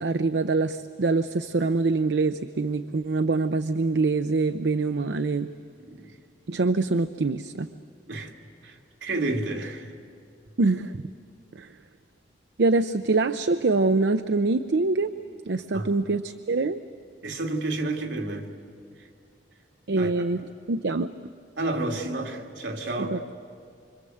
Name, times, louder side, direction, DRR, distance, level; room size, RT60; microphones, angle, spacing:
voice 1, 0.0-5.5 6.5-7.7 10.6-11.0 11.5-11.7 12.6-15.1 15.5-16.8 19.9-21.1 23.1-23.2, right 3 dB, 70° right, 0.6 m, -24 dB
voice 2, 8.6-9.9 15.7-15.9 17.2-18.5 19.0-19.1 19.9-20.1 21.6-23.2, right 2 dB, 85° right, 2.5 m, -30 dB
25.5 x 25.5 x 7.8 m
head